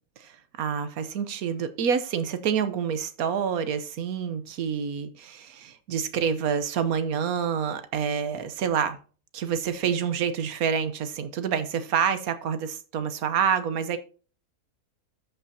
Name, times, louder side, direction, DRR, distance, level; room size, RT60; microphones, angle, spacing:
voice 1, 0.2-9.0 9.3-14.0, right 7 dB, 85° right, 1.3 m, -27 dB
13.5 x 5.7 x 2.7 m
omnidirectional pair, 1.5 m